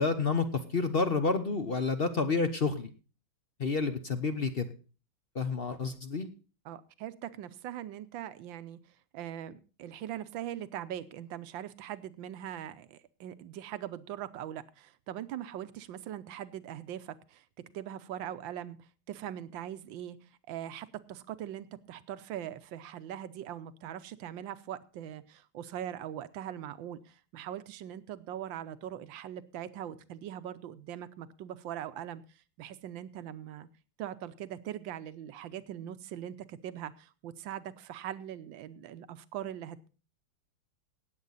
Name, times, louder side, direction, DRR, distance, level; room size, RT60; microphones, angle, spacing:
voice 1, 0.0-2.9 3.6-4.7 5.3-6.3, left 4 dB, 45° left, 9 dB, 0.8 m, -29 dB
voice 2, 6.6-8.8 9.1-17.4 17.7-18.8 19.1-20.2 20.5-32.2 32.6-33.7 34.0-39.9, right 11 dB, 80° right, 13 dB, 1.5 m, -41 dB
18.0 x 8.1 x 4.0 m, 0.35 s
omnidirectional pair, 2.1 m